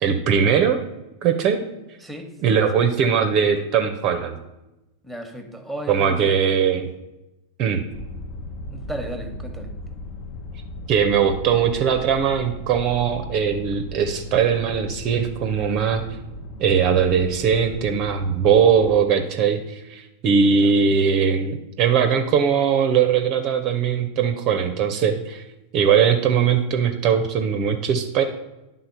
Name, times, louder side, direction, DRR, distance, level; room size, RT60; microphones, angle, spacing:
voice 1, 0.0-0.8 1.2-1.6 2.4-4.4 5.9-6.9 7.6-7.8 10.9-16.0 16.6-25.4 25.7-28.2, right 7 dB, 40° right, 7 dB, 0.6 m, -20 dB
voice 2, 2.0-2.3 5.0-6.3 6.8-6.9 8.7-9.7 20.5-20.7, right 1 dB, ahead, 6 dB, 1.1 m, -35 dB
sound 1, 7.9-19.0, left 1 dB, 40° left, 0.7 m, -37 dB
10.0 x 3.8 x 5.7 m, 0.98 s
figure-of-eight pair, 90°, 0 cm